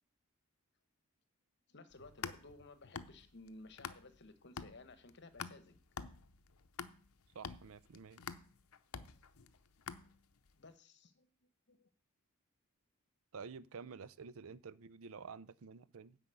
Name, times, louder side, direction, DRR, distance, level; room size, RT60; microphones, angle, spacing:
voice 1, 1.7-5.8 9.4-9.7 10.5-11.3 11.7-11.9, left 2 dB, 50° left, 1.1 m, -57 dB
sound 1, 1.9-4.3 4.6-10.5, left 6 dB, 70° left, 0.7 m, -48 dB
voice 2, 7.3-8.2 13.3-16.2, right 5 dB, 70° right, 0.5 m, -50 dB
9.8 x 5.0 x 8.0 m
head